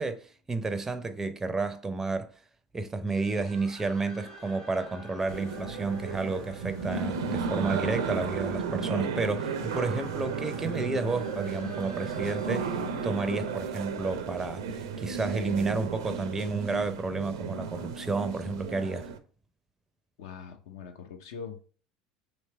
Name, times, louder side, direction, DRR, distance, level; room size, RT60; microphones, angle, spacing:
voice 1, 0.0-2.3 2.7-19.1, right 3 dB, 15° right, 0.4 m, -31 dB
sound 1, 3.1-14.3, equal, 45° left, 1.4 m, -47 dB
sound 2, 5.3-19.2, right 5 dB, 75° right, 0.4 m, -34 dB
voice 2, 20.2-21.6, left 6 dB, 70° left, 0.6 m, -42 dB
3.2 x 2.9 x 3.3 m
hypercardioid pair, 75°, 2 cm